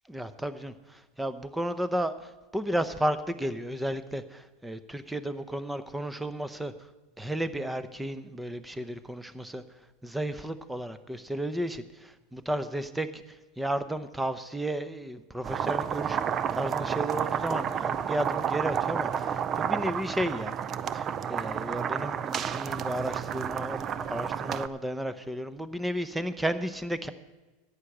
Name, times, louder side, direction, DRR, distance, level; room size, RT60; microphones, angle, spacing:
voice 1, 0.1-6.7 7.2-9.6 10.0-13.2 13.6-16.2 16.5-20.6 20.9-27.1, right 1 dB, 5° right, 12 dB, 0.8 m, -33 dB
sound 1, 15.4-24.7, right 8 dB, 35° right, 0.5 m, -31 dB
11.0 x 8.7 x 7.9 m, 1.2 s
hypercardioid pair, 110°, 0 cm